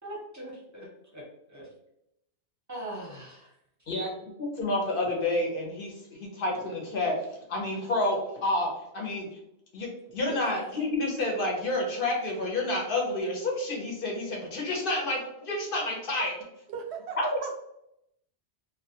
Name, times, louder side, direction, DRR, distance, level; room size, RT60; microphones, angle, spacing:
voice 1, 0.0-1.7 2.7-3.5 10.3-10.6, right 1 dB, 20° right, -3 dB, 0.6 m, -41 dB
voice 2, 3.9-5.9 6.2-7.2 7.5-8.7 8.9-9.3 9.7-16.3 17.2-17.3, left 2 dB, 60° left, -1 dB, 0.8 m, -29 dB
voice 3, 16.7-17.6, right 6 dB, 80° right, 2 dB, 0.8 m, -38 dB
2.2 x 2.2 x 2.7 m, 0.80 s
omnidirectional pair, 1.1 m